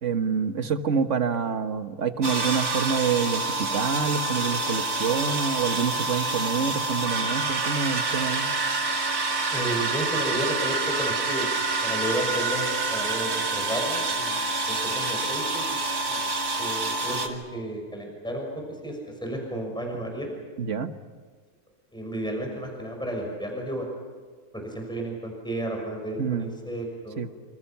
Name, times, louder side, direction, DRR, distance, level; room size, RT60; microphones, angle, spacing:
voice 1, 0.0-8.5 20.6-20.9 26.2-26.5 27.2-27.3, right 6 dB, 55° right, 8 dB, 1.6 m, -27 dB
sound 1, 2.2-17.3, right 3 dB, 80° right, 2.8 m, -27 dB
voice 2, 9.5-11.5 11.8-15.7 16.1-16.2 16.6-20.3 21.9-23.9 24.5-27.2, right 1 dB, 5° left, 1 dB, 6.0 m, -32 dB
27.5 x 27.0 x 5.9 m, 1.5 s
omnidirectional pair, 1.6 m